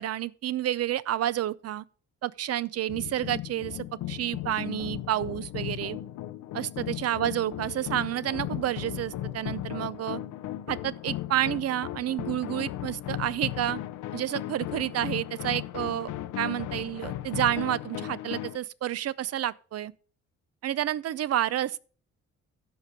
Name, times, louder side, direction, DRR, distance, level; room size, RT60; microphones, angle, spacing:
voice 1, 0.0-1.8 2.2-6.0 6.5-10.2 10.7-13.8 14.1-16.1 16.4-19.9 20.6-21.8, right 12 dB, 55° right, 0.6 m, -30 dB
sound 1, 2.9-18.6, left 13 dB, 85° left, 0.7 m, -36 dB
12.5 x 5.2 x 5.5 m
cardioid pair, 90°, 30 cm